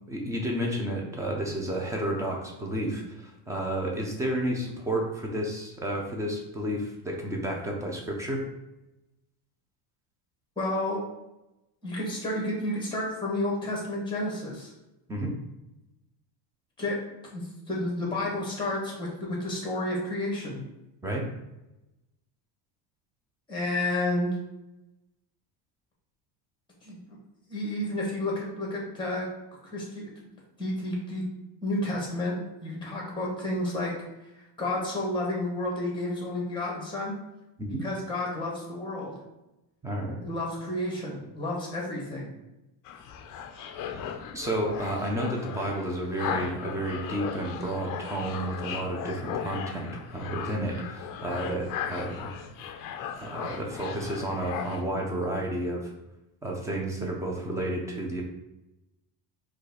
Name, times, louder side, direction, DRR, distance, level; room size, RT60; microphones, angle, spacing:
voice 1, 0.1-8.4 15.1-15.3 21.0-21.3 37.6-37.8 39.8-40.2 44.3-52.3 53.1-55.9 56.4-58.2, right 1 dB, 5° right, 0 dB, 0.5 m, -31 dB
voice 2, 10.6-11.0 11.8-14.7 16.8-17.0 17.3-20.6 23.5-24.3 26.8-27.2 27.5-29.3 29.7-30.1 30.6-31.2 31.6-33.9 34.6-37.1 37.8-39.1 40.2-42.3, left 1 dB, 10° left, -3 dB, 1.4 m, -31 dB
sound 1, 42.9-54.8, left 7 dB, 45° left, 0.5 m, -37 dB
5.1 x 2.4 x 4.1 m, 0.95 s
cardioid pair, 160°, 47 cm